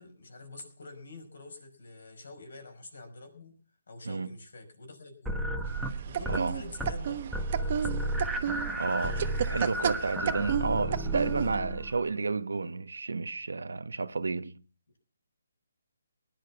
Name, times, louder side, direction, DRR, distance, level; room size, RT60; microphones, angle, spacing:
voice 1, 0.0-3.6 3.9-8.2 9.5-9.9, left 3 dB, 75° left, 5.5 m, -47 dB
sound 1, 5.3-6.5 6.7-7.1 7.3-12.1, right 1 dB, 5° right, 1.3 m, -33 dB
sound 2, 5.7-11.6, right 8 dB, 40° right, 1.0 m, -33 dB
voice 2, 8.8-14.6, right 4 dB, 90° right, 1.0 m, -31 dB
19.5 x 10.5 x 5.8 m
hypercardioid pair, 160°, 0 cm